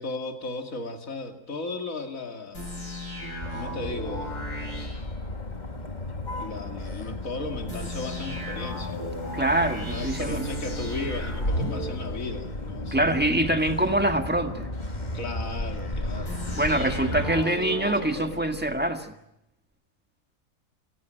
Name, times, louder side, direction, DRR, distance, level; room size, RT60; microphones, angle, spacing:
voice 1, 0.0-2.7 3.5-4.4 6.4-9.0 9.9-13.6 15.0-18.5, left 2 dB, 55° left, 5 dB, 2.8 m, -36 dB
sound 1, 2.5-5.8 7.7-12.9 16.2-18.9, equal, 80° left, 8.2 m, -35 dB
Motor vehicle (road), 3.4-17.4, left 1 dB, 30° left, 2.1 m, -35 dB
voice 2, 9.3-10.4 12.9-14.7 16.5-19.1, right 1 dB, 5° right, 6 dB, 1.6 m, -25 dB
28.5 x 15.5 x 9.2 m, 0.82 s
omnidirectional pair, 1.7 m